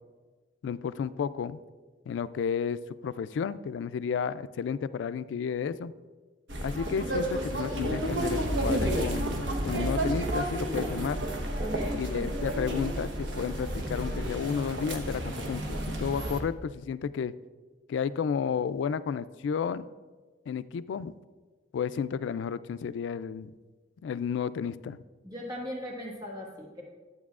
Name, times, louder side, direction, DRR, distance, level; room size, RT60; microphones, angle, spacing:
voice 1, 0.6-1.6 2.1-5.9 6.6-11.2 11.9-17.3 17.9-19.9 20.5-21.1 21.7-23.5 24.0-25.0, left 7 dB, 85° left, 16 dB, 0.3 m, -32 dB
sound 1, 6.5-16.4, right 1 dB, 80° right, 1.0 m, -31 dB
voice 2, 11.6-12.0 25.2-26.8, equal, 20° right, -2 dB, 1.5 m, -39 dB
11.5 x 8.0 x 2.4 m, 1.3 s
head